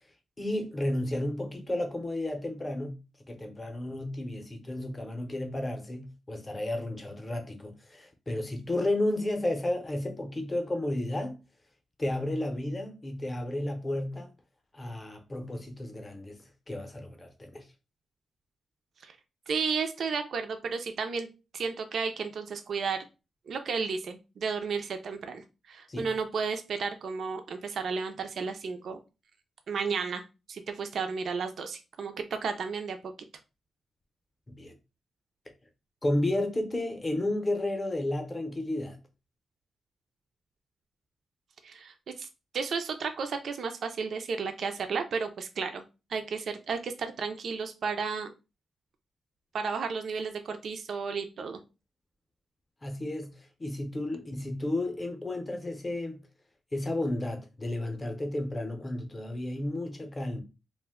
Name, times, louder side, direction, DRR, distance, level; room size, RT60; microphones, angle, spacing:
voice 1, 0.4-2.9 3.3-11.4 12.0-14.3 14.7-17.6 25.9-26.1 34.5-34.7 36.0-39.0 52.8-56.2 56.7-60.4, left 1 dB, 20° left, 0.6 m, -32 dB
voice 2, 19.5-21.3 21.5-23.1 23.5-29.0 29.7-30.2 30.5-33.1 41.6-42.3 42.5-45.8 46.1-48.3 49.5-51.6, right 5 dB, 65° right, 0.3 m, -33 dB
2.5 x 2.1 x 3.4 m
wide cardioid pair, 120°, 0 cm